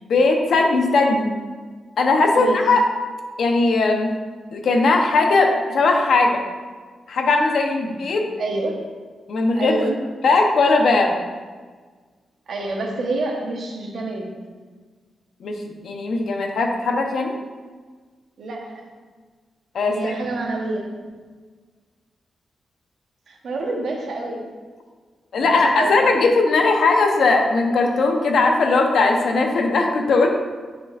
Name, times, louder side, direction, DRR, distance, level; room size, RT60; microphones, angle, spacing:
voice 1, 0.0-1.3 2.0-2.8 3.4-4.1 4.5-6.4 7.1-8.2 9.3-9.8 10.2-11.2 15.4-15.6 15.8-17.3 19.7-20.1 25.3-30.3, left 3 dB, 65° left, 2 dB, 0.8 m, -18 dB
voice 2, 8.4-8.8 9.6-10.0 12.5-14.4 18.4-18.9 19.8-21.1 23.3-24.5 25.4-26.2, right 2 dB, 60° right, 1 dB, 1.1 m, -28 dB
9.6 x 5.1 x 2.5 m, 1.5 s
wide cardioid pair, 155°, 0 cm